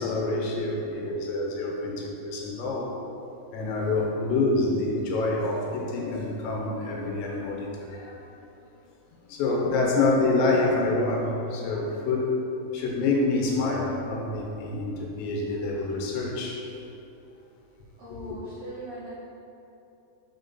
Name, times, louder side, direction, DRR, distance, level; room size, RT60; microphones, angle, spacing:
voice 1, 0.0-2.9 3.5-8.2 9.3-12.3 12.7-16.6, left 2 dB, 80° left, -1 dB, 3.1 m, -27 dB
voice 2, 18.0-19.1, right 1 dB, 70° right, -10 dB, 1.8 m, -40 dB
6.0 x 4.5 x 4.0 m, 2.8 s
omnidirectional pair, 5.3 m